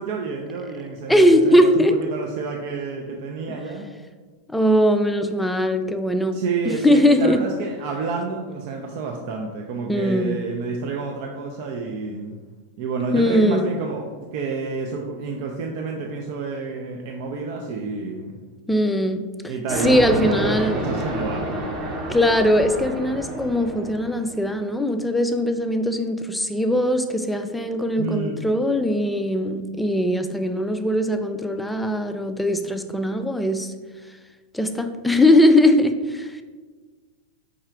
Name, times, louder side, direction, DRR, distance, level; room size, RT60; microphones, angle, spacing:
voice 1, 0.0-1.8 2.1-3.9 6.3-12.4 12.8-18.3 19.5-21.5 28.0-28.4, right 4 dB, 55° right, 1 dB, 0.4 m, -29 dB
voice 2, 1.1-2.0 3.5-3.6 4.5-7.4 9.9-10.4 13.1-13.7 18.7-19.5 19.8-20.8 22.1-33.7 34.5-36.4, left 1 dB, 5° left, 7 dB, 0.3 m, -20 dB
sound 1, 19.7-24.4, right 1 dB, 30° right, 0.8 m, -29 dB
4.8 x 2.4 x 4.4 m, 1.4 s
supercardioid pair, 130°, 0 cm